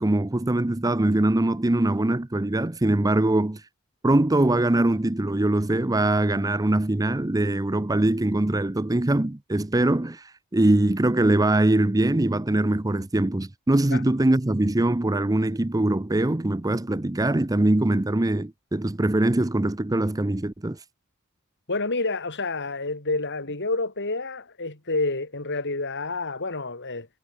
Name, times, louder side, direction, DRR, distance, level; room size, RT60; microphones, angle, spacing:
voice 1, 0.0-3.6 4.0-20.8, right 1 dB, 15° right, 0.7 m, -22 dB
voice 2, 21.7-27.1, left 3 dB, 55° left, 4.7 m, -28 dB
head